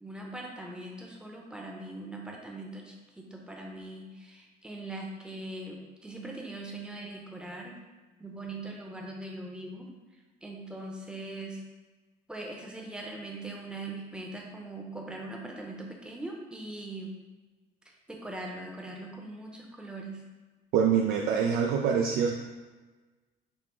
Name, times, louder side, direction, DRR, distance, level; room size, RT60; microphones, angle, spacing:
voice 1, 0.0-7.8 8.2-9.9 10.4-11.6 12.3-17.1 18.1-20.2, right 2 dB, 5° right, -1 dB, 0.7 m, -41 dB
voice 2, 20.7-22.3, right 7 dB, 75° right, 1 dB, 0.4 m, -25 dB
5.3 x 2.0 x 4.4 m, 1.3 s
cardioid pair, 110°, 17 cm